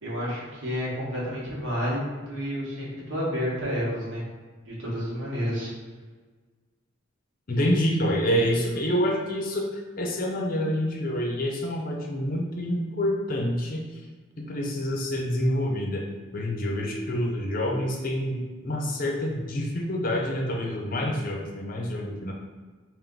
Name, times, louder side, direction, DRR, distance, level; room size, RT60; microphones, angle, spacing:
voice 1, 0.0-2.0 2.3-4.2 4.7-5.7, equal, 70° right, -6 dB, 1.3 m, -30 dB
voice 2, 7.5-14.0 14.4-16.0 16.3-22.3, equal, 45° left, 0 dB, 0.6 m, -27 dB
3.6 x 2.5 x 3.7 m, 1.4 s
head